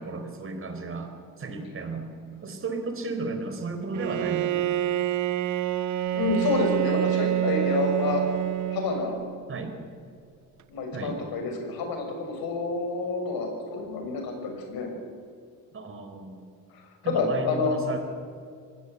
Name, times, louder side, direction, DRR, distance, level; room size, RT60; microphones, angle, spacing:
voice 1, 0.0-2.2 2.4-4.7 9.5-9.7 10.9-11.2 15.7-16.5 17.0-18.0, right 3 dB, 35° right, 6 dB, 4.5 m, -34 dB
Bowed string instrument, 3.9-9.4, right 12 dB, 50° right, 0.7 m, -27 dB
voice 2, 6.1-8.2 8.7-9.2 10.7-14.9 16.7-17.8, left 4 dB, 70° left, 4 dB, 6.4 m, -28 dB
24.5 x 19.0 x 8.2 m, 2.2 s
cardioid pair, 115°, 37 cm